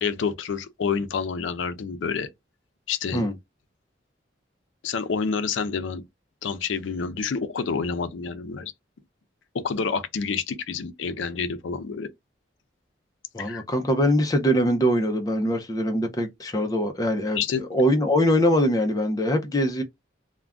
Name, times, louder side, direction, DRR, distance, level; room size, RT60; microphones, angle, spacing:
voice 1, 0.0-2.3 2.9-3.3 4.8-6.0 6.4-8.7 9.5-12.1 13.4-13.6 17.3-17.6, left 5 dB, 85° left, 0.4 m, -28 dB
voice 2, 13.3-19.8, equal, 20° left, 0.4 m, -23 dB
2.4 x 2.1 x 3.3 m
head